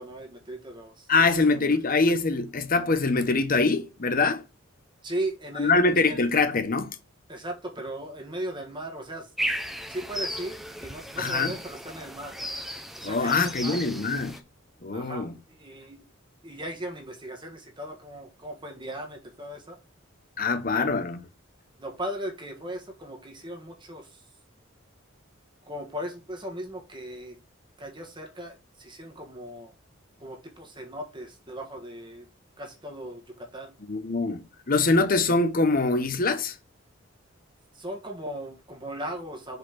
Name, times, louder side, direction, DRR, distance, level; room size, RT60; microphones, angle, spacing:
voice 1, 0.0-1.8 5.0-6.2 7.3-9.3 9.9-12.3 13.0-13.8 14.9-16.0 16.4-19.8 20.7-20.9 21.8-24.2 25.7-27.4 27.8-29.7 30.2-32.3 32.6-33.7 37.7-39.6, right 1 dB, 25° right, 1.4 m, -37 dB
voice 2, 1.1-4.4 5.6-7.0 11.2-11.5 13.0-14.4 14.8-15.4 20.4-21.2 33.9-36.5, left 3 dB, 45° left, 1.0 m, -24 dB
sound 1, 9.4-14.4, equal, ahead, 0.7 m, -35 dB
5.3 x 4.2 x 5.8 m
head